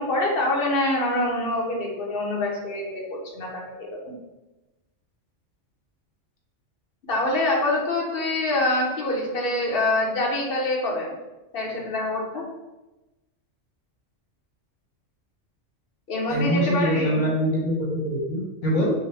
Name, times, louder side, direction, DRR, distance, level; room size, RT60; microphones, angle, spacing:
voice 1, 0.0-4.1 7.1-11.1 11.5-12.4 16.1-17.2, left 2 dB, 50° left, -2 dB, 1.1 m, -25 dB
voice 2, 16.3-18.9, equal, 75° left, -5 dB, 1.3 m, -24 dB
6.1 x 2.1 x 3.4 m, 1.1 s
omnidirectional pair, 1.3 m